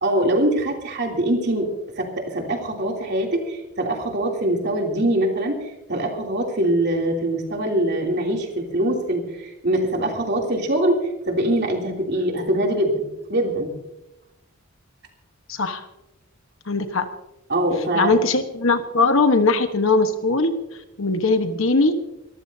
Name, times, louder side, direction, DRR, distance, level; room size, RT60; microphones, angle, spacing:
voice 1, 0.0-1.7 1.9-13.7 17.5-18.2, right 1 dB, 50° right, 1 dB, 3.1 m, -23 dB
voice 2, 15.5-15.9 16.7-17.1 17.9-20.5 21.0-21.9, left 3 dB, 70° left, 8 dB, 1.3 m, -20 dB
24.5 x 14.5 x 2.8 m, 0.92 s
head